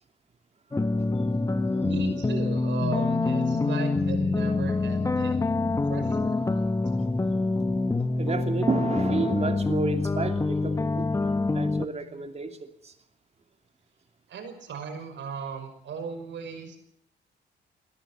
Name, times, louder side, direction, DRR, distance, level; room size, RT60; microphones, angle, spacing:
sound 1, 0.7-11.8, left 3 dB, 15° left, 0.8 m, -26 dB
voice 1, 1.8-5.5 5.9-6.6 14.3-16.8, right 5 dB, 70° right, 8 dB, 5.6 m, -37 dB
sound 2, 2.8-12.3, left 8 dB, 45° left, 2.0 m, -38 dB
voice 2, 8.2-12.9, right 4 dB, 35° right, 6 dB, 2.8 m, -31 dB
22.0 x 13.5 x 8.7 m, 0.72 s
cardioid pair, 90°, 20 cm